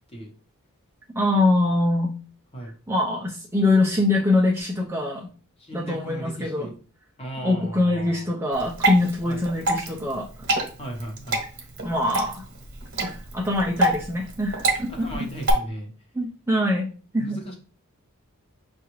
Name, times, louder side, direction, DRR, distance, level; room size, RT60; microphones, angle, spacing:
voice 1, 1.2-2.2 2.9-5.3 5.7-6.7 7.4-10.3 11.8-12.4 13.0-15.1 16.1-17.4, left 2 dB, 10° right, -2 dB, 0.5 m, -23 dB
voice 2, 5.6-6.7 7.2-8.3 9.2-9.4 10.8-11.4 14.9-15.9 17.2-17.5, right 1 dB, 25° left, 1 dB, 1.0 m, -36 dB
Water / Drip, 8.5-15.5, right 2 dB, 50° right, 1.1 m, -27 dB
5.9 x 2.4 x 3.0 m, 0.38 s
head